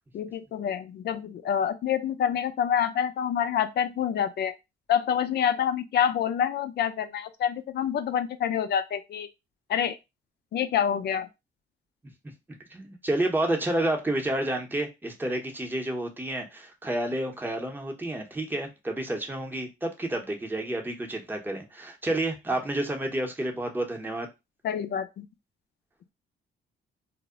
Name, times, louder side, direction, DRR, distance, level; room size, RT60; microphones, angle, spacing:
voice 1, 0.1-4.5 4.9-9.3 9.7-10.0 10.5-11.3 24.6-25.3, left 8 dB, 55° left, 0.4 m, -27 dB
voice 2, 12.7-24.3, right 1 dB, 10° right, 0.7 m, -30 dB
2.1 x 2.0 x 3.6 m
cardioid pair, 90°, 20 cm